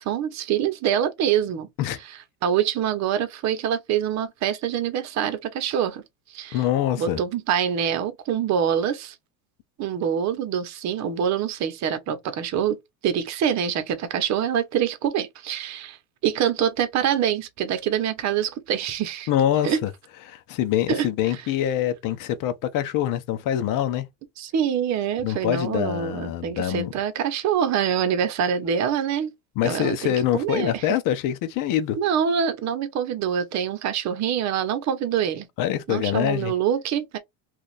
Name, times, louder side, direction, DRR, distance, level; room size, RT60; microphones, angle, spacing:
voice 1, 0.0-1.7 2.4-6.0 6.3-6.6 7.0-9.1 9.8-12.8 13.0-16.0 16.2-19.3 19.6-19.8 20.9-21.1 24.4-29.3 29.6-30.8 32.0-35.5 35.9-37.2, right 8 dB, 40° right, 0.9 m, -25 dB
voice 2, 6.5-7.2 19.3-19.9 20.3-24.1 25.2-26.9 29.6-32.0 35.6-36.5, left 11 dB, 50° left, 0.8 m, -24 dB
3.0 x 2.5 x 4.0 m
supercardioid pair, 130°, 42 cm